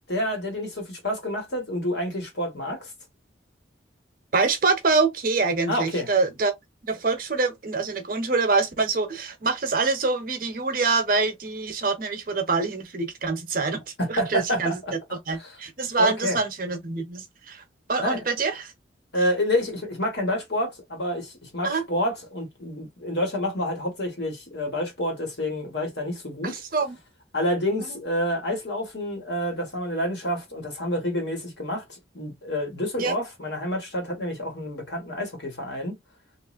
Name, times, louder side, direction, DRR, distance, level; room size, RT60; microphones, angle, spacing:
voice 1, 0.1-2.9 5.7-6.1 14.0-14.9 15.4-15.5 16.0-16.4 18.0-18.2 19.1-26.5 27.3-36.0, left 1 dB, 60° left, 1.3 m, -28 dB
voice 2, 4.3-6.5 6.8-13.8 14.1-14.7 15.1-17.6 17.9-18.7 21.6-21.8 26.4-27.0 33.0-33.2, right 4 dB, 45° right, 0.7 m, -25 dB
3.1 x 2.5 x 2.4 m
head